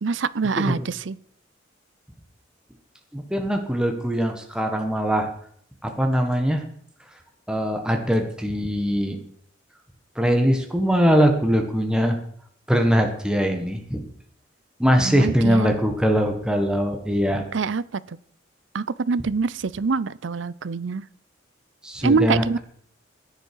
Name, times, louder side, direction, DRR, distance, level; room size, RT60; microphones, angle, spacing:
voice 1, 0.0-1.2 15.0-15.7 17.5-18.2 18.7-21.0 22.0-22.6, right 4 dB, 70° right, 19 dB, 0.5 m, -25 dB
voice 2, 3.1-5.3 5.8-6.6 7.5-9.2 10.2-12.2 12.7-14.0 14.8-17.4 21.8-22.6, equal, 5° right, 3 dB, 1.5 m, -21 dB
15.5 x 10.5 x 4.7 m, 0.62 s
head